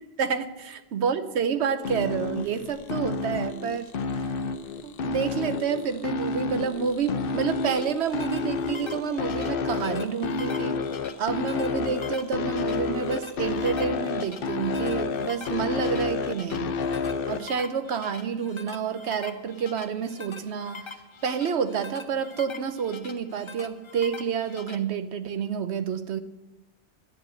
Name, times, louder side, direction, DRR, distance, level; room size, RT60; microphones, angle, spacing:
voice 1, 0.2-3.9 4.8-10.8 11.2-16.7 17.3-20.9 21.2-26.2, right 6 dB, 80° right, 11 dB, 1.0 m, -29 dB
sound 1, 1.8-17.4, left 4 dB, 60° left, 0.8 m, -30 dB
sound 2, 7.3-24.8, left 4 dB, 35° left, 0.6 m, -44 dB
11.0 x 7.6 x 7.8 m, 1.0 s
omnidirectional pair, 1.1 m